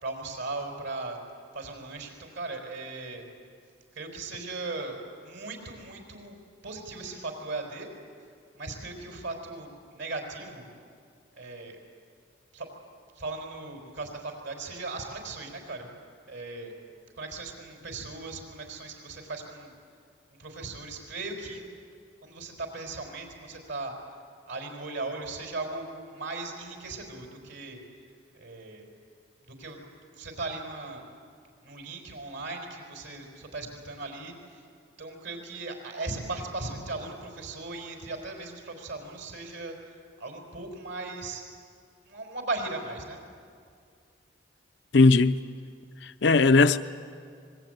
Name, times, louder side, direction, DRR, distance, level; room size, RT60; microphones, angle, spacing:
voice 1, 0.0-1.2 1.5-3.2 3.9-5.0 5.2-6.4 6.6-7.9 8.5-10.7 11.4-11.8 12.5-12.7 13.1-15.9 16.3-16.7 17.2-19.7 20.4-21.6 22.2-23.9 24.5-27.8 28.3-28.8 29.4-29.8 30.2-31.1 31.6-34.6 35.0-39.7 40.2-41.4 42.1-43.2, right 3 dB, 70° right, 4.8 m, -38 dB
voice 2, 44.9-45.4 46.0-46.8, left 3 dB, 60° left, 0.6 m, -18 dB
25.5 x 21.5 x 9.3 m
head